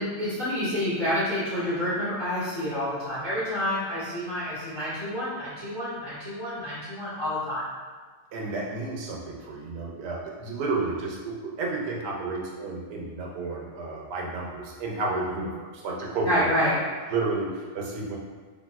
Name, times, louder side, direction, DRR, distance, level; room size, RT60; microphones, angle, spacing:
voice 1, 0.0-7.6 16.2-16.7, equal, 20° left, -12 dB, 0.7 m, -28 dB
voice 2, 8.3-16.5 17.1-18.2, right 3 dB, 80° right, -2 dB, 1.1 m, -31 dB
3.3 x 2.5 x 2.3 m, 1.5 s
omnidirectional pair, 1.7 m